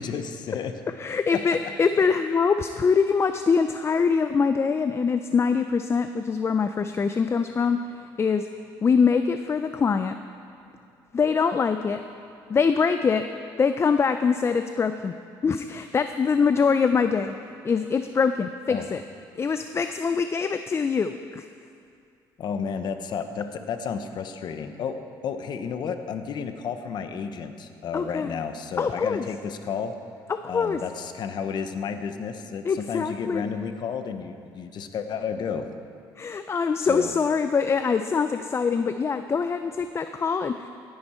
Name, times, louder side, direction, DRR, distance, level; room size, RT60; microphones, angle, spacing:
voice 1, 0.0-0.8 1.3-1.4 18.7-18.9 22.4-25.0 25.2-29.9 30.5-35.7 36.8-37.1, left 6 dB, 55° left, 8 dB, 1.0 m, -32 dB
voice 2, 1.0-8.5 8.8-10.1 11.1-12.0 12.5-13.2 13.6-15.1 15.4-17.4 17.6-19.0 19.3-21.5 27.9-28.4 28.8-29.3 30.3-30.8 32.6-33.5 36.2-40.7, left 5 dB, 30° left, 9 dB, 0.5 m, -24 dB
16.5 x 10.5 x 4.4 m, 2.4 s
supercardioid pair, 90°, 9 cm